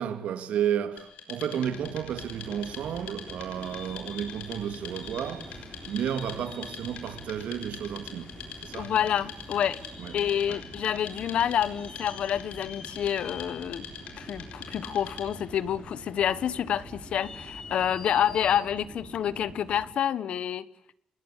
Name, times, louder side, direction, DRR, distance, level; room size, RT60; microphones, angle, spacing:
voice 1, 0.0-8.3 8.6-8.9 10.0-10.1 10.5-10.6, right 9 dB, 85° right, 2.2 m, -32 dB
Wood, 1.0-15.5, left 7 dB, 90° left, 6.0 m, -44 dB
sound 1, 1.6-19.9, right 3 dB, 25° right, 4.1 m, -47 dB
sound 2, 2.1-18.6, left 5 dB, 40° left, 6.4 m, -48 dB
voice 2, 8.7-9.8 10.1-13.9 14.2-20.7, left 9 dB, 60° left, 1.4 m, -28 dB
27.5 x 21.5 x 8.5 m
wide cardioid pair, 180°, 2 cm